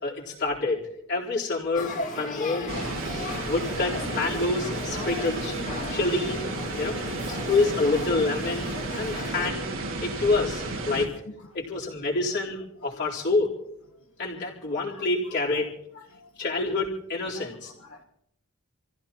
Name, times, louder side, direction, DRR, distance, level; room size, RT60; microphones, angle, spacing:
voice 1, 0.0-2.7 3.5-5.6 5.9-6.4 6.7-9.7 10.0-11.1 11.5-13.5 14.2-15.7 16.4-17.7, left 3 dB, 55° left, -4 dB, 3.9 m, -27 dB
Male speech man speaking / Child speech kid speaking / Conversation, 1.7-9.5, left 2 dB, 40° left, 2.0 m, -36 dB
voice 2, 2.7-3.5 3.9-4.1 7.4-7.5 10.2-10.3 11.7-11.8 13.0-13.1 14.9-15.0 15.5-15.6 15.9-16.3 17.3-17.5 17.8-18.0, left 3 dB, 75° left, -2 dB, 1.4 m, -44 dB
Night between the streams (front), 2.7-11.1, right 2 dB, 65° right, 1.9 m, -33 dB
28.0 x 15.5 x 3.0 m, 0.77 s
head